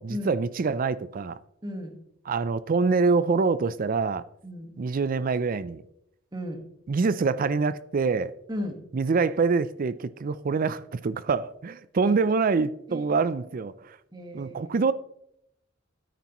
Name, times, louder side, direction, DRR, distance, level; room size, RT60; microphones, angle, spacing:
voice 1, 0.0-1.4 2.2-4.2 4.8-5.8 6.9-8.3 8.9-14.0 14.3-14.9, right 4 dB, 45° right, 0.4 m, -25 dB
voice 2, 1.6-1.9 4.4-4.8 6.3-6.6 8.5-8.8 12.0-12.1 12.9-13.0 14.1-14.7, left 1 dB, 20° right, 1.5 m, -35 dB
13.5 x 9.3 x 3.0 m
head